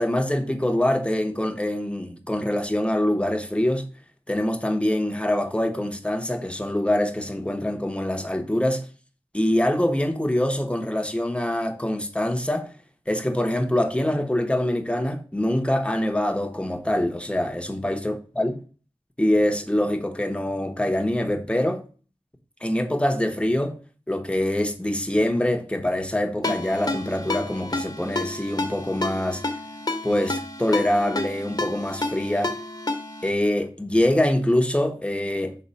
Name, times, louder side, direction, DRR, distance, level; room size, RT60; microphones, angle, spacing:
voice 1, 0.0-3.9 4.3-8.8 9.3-12.7 13.1-18.5 19.2-21.8 22.6-23.8 24.1-29.4 30.0-32.6 33.2-35.6, left 1 dB, 10° left, 1.0 m, -24 dB
Ringtone, 26.4-33.3, left 2 dB, 40° left, 1.2 m, -30 dB
5.6 x 3.9 x 5.2 m
wide cardioid pair, 70°, 10 cm